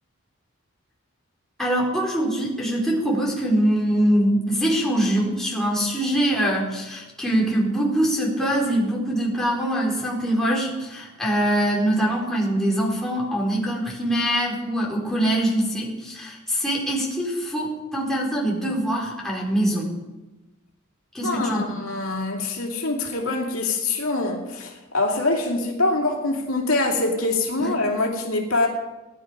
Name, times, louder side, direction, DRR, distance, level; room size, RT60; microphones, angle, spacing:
voice 1, 1.6-19.9 21.1-21.6 27.6-27.7, right 1 dB, ahead, 4.3 m, -23 dB
voice 2, 21.2-28.7, left 2 dB, 75° left, 2.6 m, -24 dB
19.5 x 11.0 x 5.2 m
head